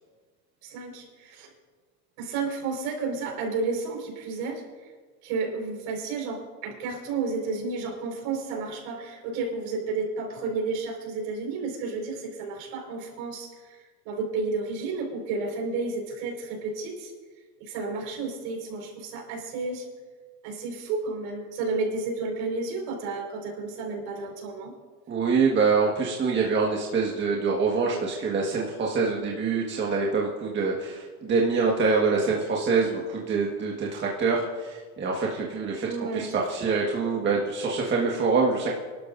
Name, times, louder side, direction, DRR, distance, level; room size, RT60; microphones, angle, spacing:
voice 1, 0.6-1.5 2.2-4.6 5.2-13.8 14.0-17.1 17.6-19.9 20.4-24.7 35.8-36.4, right 4 dB, 65° right, 0 dB, 4.8 m, -31 dB
voice 2, 25.1-38.7, right 4 dB, 25° right, -2 dB, 1.6 m, -25 dB
25.0 x 12.5 x 2.6 m, 1.4 s
supercardioid pair, 135°, 43 cm